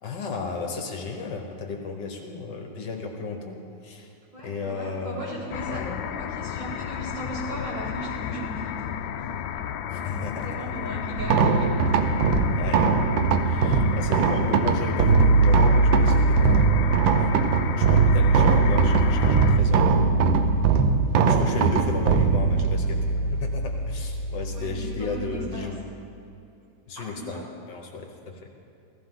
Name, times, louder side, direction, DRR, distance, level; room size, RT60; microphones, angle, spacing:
voice 1, 0.0-4.1 4.4-6.1 9.9-10.6 12.5-12.8 13.5-17.3 17.7-20.1 21.2-25.8 26.9-28.4, left 4 dB, 65° left, 2 dB, 1.8 m, -34 dB
voice 2, 4.3-5.8 6.1-9.3 9.9-11.9 21.2-21.7 24.5-25.7 27.0-27.4, right 1 dB, 65° right, -8 dB, 4.5 m, -38 dB
sound 1, 5.5-19.6, left 9 dB, 85° left, 1.3 m, -32 dB
sound 2, 11.2-25.4, right 4 dB, 90° right, 1.5 m, -21 dB
16.0 x 14.5 x 3.8 m, 2.6 s
omnidirectional pair, 2.0 m